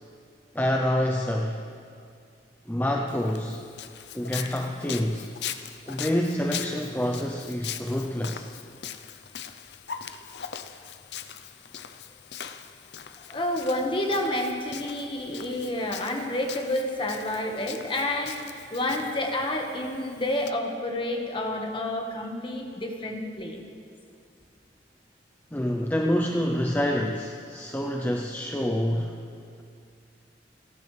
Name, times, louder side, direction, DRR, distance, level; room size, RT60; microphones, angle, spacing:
voice 1, 0.5-1.6 2.7-3.6 4.1-5.3 5.9-8.5 25.5-29.2, equal, 10° left, 1 dB, 0.6 m, -27 dB
Walk footsteps, 3.1-20.5, left 8 dB, 70° left, 0.6 m, -41 dB
voice 2, 13.3-23.6, left 1 dB, 30° left, 2 dB, 1.5 m, -29 dB
29.5 x 11.5 x 3.3 m, 2.3 s
head